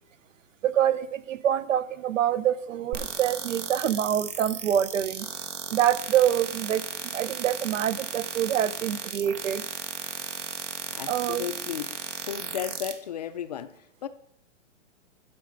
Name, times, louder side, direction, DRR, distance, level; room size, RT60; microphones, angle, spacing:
voice 1, 0.6-5.3 5.7-6.8 7.1-9.6 11.1-11.4, right 10 dB, 90° right, 0.8 m, -26 dB
sound 1, 2.9-12.9, right 7 dB, 75° right, 1.5 m, -35 dB
voice 2, 10.9-14.1, left 9 dB, 35° left, 0.4 m, -35 dB
11.5 x 6.3 x 5.0 m
hypercardioid pair, 165°, 37 cm